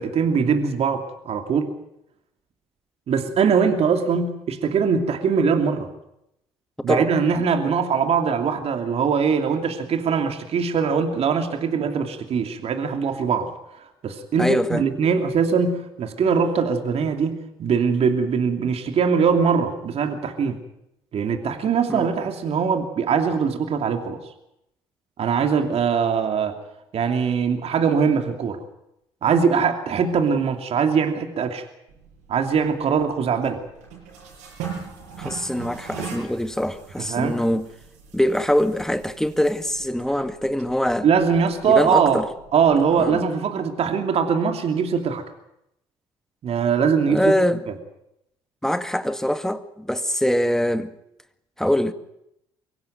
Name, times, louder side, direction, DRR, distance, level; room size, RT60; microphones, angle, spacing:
voice 1, 0.0-1.7 3.1-5.9 6.8-13.5 13.8-20.6 21.1-24.2 25.2-26.6 26.9-28.6 29.2-31.6 32.3-33.6 37.0-37.4 41.0-42.2 42.5-45.2 46.4-47.3, right 6 dB, 55° right, 2.8 m, -22 dB
voice 2, 14.4-14.8 21.9-22.1 35.2-37.7 38.1-41.1 41.6-42.3 43.0-43.2 47.1-47.6 48.6-50.9 51.6-51.9, equal, 5° left, 2.0 m, -23 dB
sound 1, 31.9-43.1, right 6 dB, 80° right, 7.0 m, -41 dB
24.0 x 16.5 x 9.3 m
hypercardioid pair, 55°, 12 cm